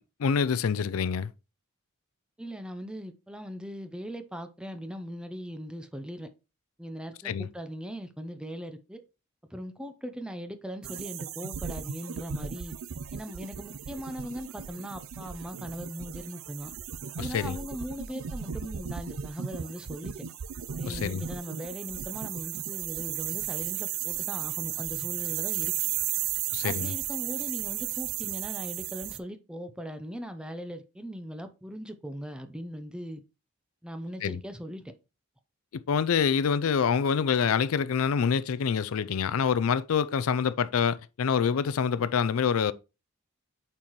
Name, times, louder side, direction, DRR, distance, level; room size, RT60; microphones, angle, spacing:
voice 1, 0.2-1.3 7.2-7.5 17.2-17.6 20.9-21.2 26.5-26.9 34.2-34.4 35.9-42.7, left 6 dB, 85° left, 0.4 m, -26 dB
voice 2, 2.4-6.3 6.8-9.0 9.5-12.7 13.1-16.7 17.2-20.1 20.8-25.7 26.6-33.2 33.8-34.9, equal, 5° right, 0.6 m, -39 dB
sound 1, 10.8-29.2, right 10 dB, 70° right, 0.5 m, -35 dB
8.6 x 4.4 x 3.0 m
head